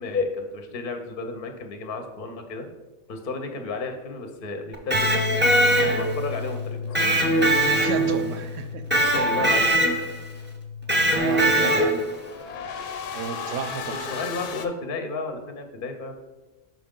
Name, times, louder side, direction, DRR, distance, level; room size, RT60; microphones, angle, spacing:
voice 1, 0.0-2.7 3.1-7.3 9.1-10.0 11.4-11.8 13.9-16.2, left 3 dB, 50° left, 6 dB, 0.8 m, -33 dB
Electric guitar, 4.7-6.3 6.9-8.3 8.9-10.2 10.9-12.1, right 1 dB, 10° right, 0.7 m, -21 dB
Bass guitar, 4.9-11.2, left 5 dB, 55° right, 0.3 m, -34 dB
sound 1, 6.9-7.8 11.5-14.7, left 6 dB, 85° left, 1.0 m, -36 dB
voice 2, 7.7-8.8 11.1-12.0 13.1-14.0, right 6 dB, 85° right, 9 dB, 1.0 m, -32 dB
5.9 x 5.0 x 3.6 m, 1.1 s
omnidirectional pair, 1.3 m